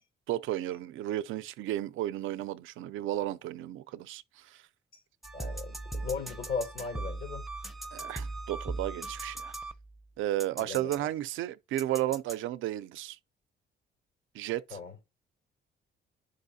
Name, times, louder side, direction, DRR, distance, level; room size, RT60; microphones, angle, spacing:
voice 1, 0.3-4.6 7.9-9.5 10.2-13.2 14.3-14.8, right 14 dB, 85° right, 0.5 m, -33 dB
sound 1, 5.2-10.0 10.4-11.0 11.8-12.4, right 2 dB, ahead, 0.6 m, -39 dB
voice 2, 5.3-7.4 10.6-11.1 14.7-14.9, left 5 dB, 75° left, 3.1 m, -37 dB
9.9 x 5.2 x 2.7 m
cardioid pair, 90°, 20 cm